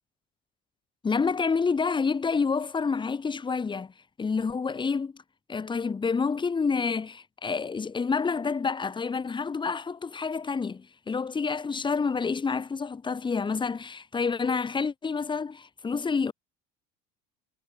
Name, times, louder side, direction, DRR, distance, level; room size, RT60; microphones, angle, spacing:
voice 1, 1.0-3.9 4.2-5.2 5.5-16.3, left 5 dB, 20° left, 6.6 m, -28 dB
supercardioid pair, 110°, 21 cm